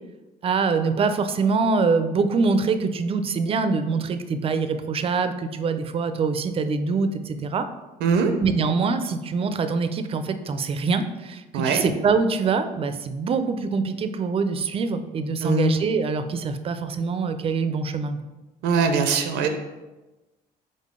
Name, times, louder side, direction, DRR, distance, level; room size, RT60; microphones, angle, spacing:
voice 1, 0.4-7.7 8.4-18.2, right 4 dB, 35° right, 9 dB, 0.4 m, -24 dB
voice 2, 8.0-8.3 11.5-11.8 15.4-15.7 18.6-19.5, right 4 dB, 90° right, 6 dB, 0.5 m, -21 dB
3.8 x 3.7 x 3.6 m, 1.1 s
cardioid pair, 110°, 17 cm